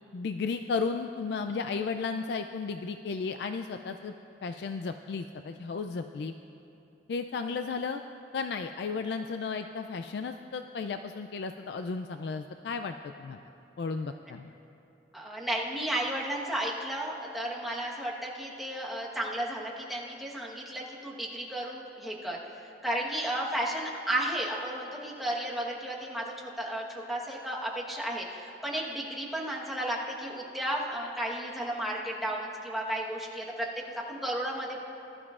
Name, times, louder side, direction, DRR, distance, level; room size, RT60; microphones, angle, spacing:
voice 1, 0.1-4.1 4.4-6.3 7.1-8.0 8.3-13.4 13.8-14.5, left 4 dB, 65° left, 7 dB, 0.3 m, -34 dB
voice 2, 15.1-33.7 34.1-34.8, right 1 dB, ahead, -4 dB, 1.2 m, -33 dB
20.0 x 12.0 x 2.4 m, 2.9 s
head